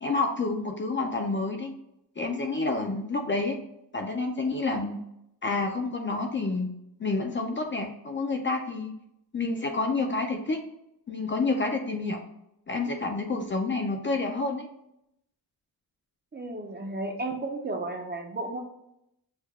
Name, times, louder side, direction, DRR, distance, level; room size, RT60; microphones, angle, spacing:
voice 1, 0.0-1.7 2.2-3.6 3.9-5.0 5.4-6.7 7.0-8.9 9.3-10.6 11.1-12.2 12.7-14.7, left 3 dB, 30° left, 3 dB, 0.4 m, -29 dB
voice 2, 16.3-18.6, right 2 dB, 25° right, 3 dB, 0.5 m, -33 dB
6.4 x 2.2 x 3.4 m, 0.80 s
wide cardioid pair, 175°, 39 cm